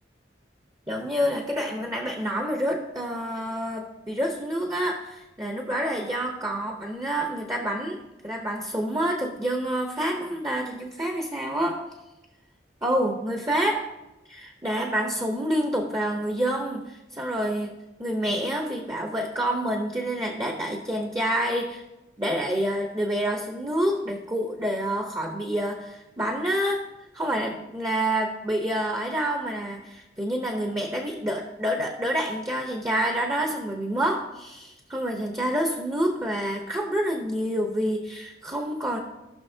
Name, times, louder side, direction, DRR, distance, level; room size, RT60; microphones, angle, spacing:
voice 1, 0.9-8.0 8.2-11.9 12.8-13.9 14.3-17.7 18.0-21.8 22.2-26.8 27.1-39.0, right 1 dB, 15° right, 2 dB, 0.8 m, -28 dB
17.5 x 6.2 x 2.8 m, 1.0 s
head